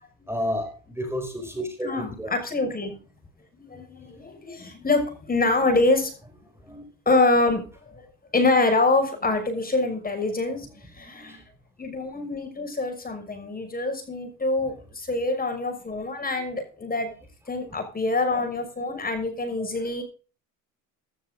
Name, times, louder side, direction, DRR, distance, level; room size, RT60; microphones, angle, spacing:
voice 1, 0.3-2.3 4.3-4.4 6.7-6.8 11.1-11.4 17.7-17.8, equal, 5° right, 6 dB, 4.6 m, -31 dB
voice 2, 1.8-2.9 3.6-6.1 7.1-8.1 8.3-11.4 11.8-17.1 17.5-20.0, left 2 dB, 20° left, 6 dB, 6.1 m, -25 dB
16.5 x 12.5 x 3.8 m, 0.38 s
hypercardioid pair, 75°, 40 cm